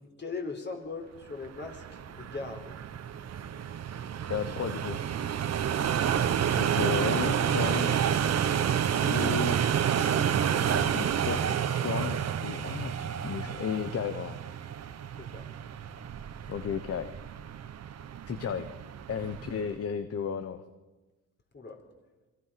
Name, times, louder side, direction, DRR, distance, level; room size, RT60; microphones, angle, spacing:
voice 1, 0.0-2.7 5.9-6.1 15.2-15.5 21.5-21.8, left 3 dB, 35° left, 4 dB, 4.5 m, -40 dB
sound 1, 1.4-19.7, right 8 dB, 60° right, 1.4 m, -30 dB
voice 2, 4.3-5.0 6.6-7.9 9.0-9.6 10.4-14.4 16.5-17.1 18.3-18.7 19.1-20.6, left 7 dB, 50° left, 11 dB, 1.1 m, -34 dB
27.0 x 23.5 x 6.0 m, 1.2 s
cardioid pair, 90°, 30 cm